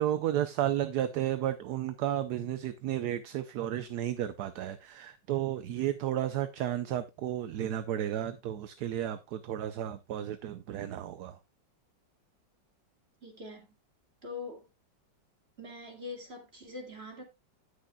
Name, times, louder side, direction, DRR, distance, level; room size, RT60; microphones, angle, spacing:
voice 1, 0.0-11.4, right 11 dB, 70° right, 1.1 m, -33 dB
voice 2, 13.2-13.8 14.2-14.7 15.6-17.2, left 3 dB, 35° right, 2.4 m, -43 dB
17.5 x 6.5 x 2.2 m
omnidirectional pair, 2.0 m